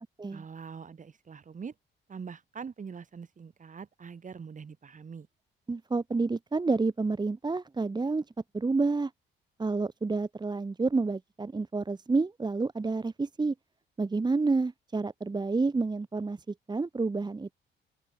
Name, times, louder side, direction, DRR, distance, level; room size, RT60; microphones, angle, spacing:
voice 1, 0.3-1.7 2.1-5.3, right 6 dB, 40° right, 3.5 m, -43 dB
voice 2, 5.7-8.2 8.5-9.1 9.6-13.5 14.0-16.4 16.7-17.5, right 3 dB, 20° right, 1.5 m, -29 dB
open air
cardioid pair, 90°, 20 cm